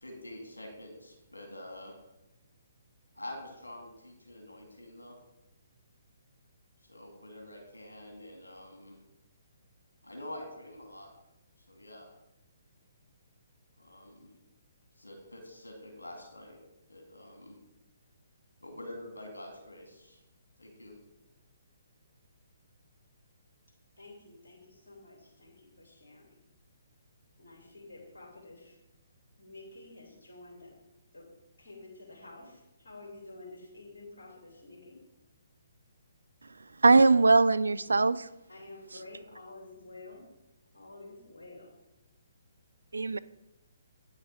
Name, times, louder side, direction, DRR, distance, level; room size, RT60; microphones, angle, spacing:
voice 1, 0.0-2.0 3.1-5.2 6.8-9.0 10.0-11.1 11.7-12.1 13.8-14.3 15.0-16.6 16.9-17.6 18.6-20.2 20.6-20.9, left 1 dB, 80° left, 3 dB, 2.1 m, -46 dB
voice 2, 24.0-26.3 27.4-28.8 29.4-30.7 31.1-31.3 31.6-35.0 38.5-40.2 40.7-41.7, left 2 dB, 60° left, -2 dB, 3.0 m, -50 dB
voice 3, 36.8-38.3 42.9-43.2, right 3 dB, 70° right, 16 dB, 0.3 m, -21 dB
9.1 x 6.4 x 5.1 m, 0.95 s
figure-of-eight pair, 130°, 0 cm